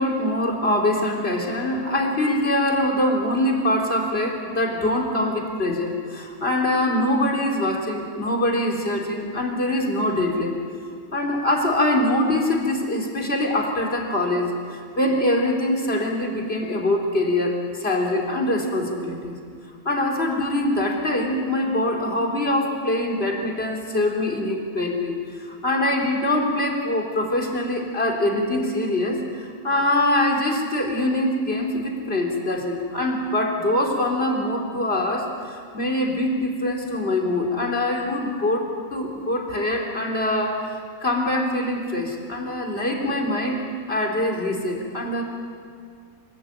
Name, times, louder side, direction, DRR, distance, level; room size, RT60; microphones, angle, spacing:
voice 1, 0.0-10.6 11.1-19.4 19.8-38.6 38.9-43.6 43.9-45.2, left 1 dB, 45° left, 0 dB, 4.0 m, -23 dB
27.0 x 18.5 x 9.0 m, 2.1 s
omnidirectional pair, 1.5 m